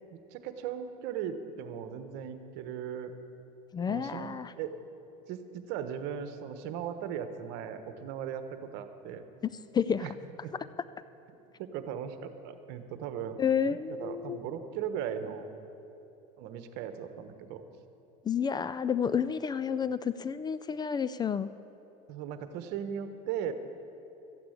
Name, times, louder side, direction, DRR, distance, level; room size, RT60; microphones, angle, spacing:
voice 1, 0.1-3.1 3.9-4.9 5.3-9.2 10.0-10.1 10.4-10.5 11.6-15.5 16.4-17.6 22.1-23.5, right 8 dB, 65° right, 9 dB, 1.2 m, -38 dB
voice 2, 3.7-4.5 9.4-10.1 13.4-14.4 18.2-21.5, left 7 dB, 20° left, 14 dB, 0.4 m, -30 dB
14.0 x 8.7 x 8.7 m, 2.9 s
supercardioid pair, 105°, 19 cm